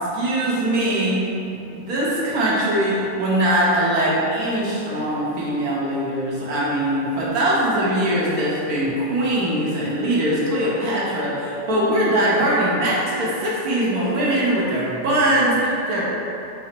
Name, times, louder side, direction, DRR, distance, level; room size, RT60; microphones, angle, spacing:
voice 1, 0.1-1.3 1.7-16.0, right 1 dB, 60° right, -7 dB, 1.3 m, -21 dB
4.9 x 2.0 x 4.3 m, 2.8 s
omnidirectional pair, 1.9 m